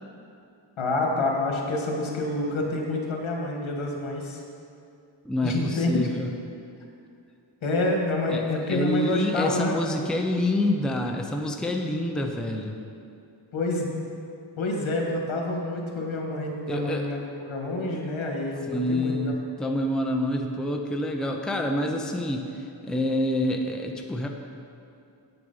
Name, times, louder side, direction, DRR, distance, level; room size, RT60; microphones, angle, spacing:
voice 1, 0.8-4.4 5.4-5.9 7.6-9.8 13.5-13.9 14.6-19.3, left 2 dB, 85° left, 0 dB, 1.8 m, -28 dB
voice 2, 5.2-6.3 8.3-12.8 16.7-17.1 18.7-24.3, left 1 dB, ahead, 2 dB, 0.6 m, -27 dB
8.4 x 8.0 x 5.5 m, 2.5 s
wide cardioid pair, 150°, 46 cm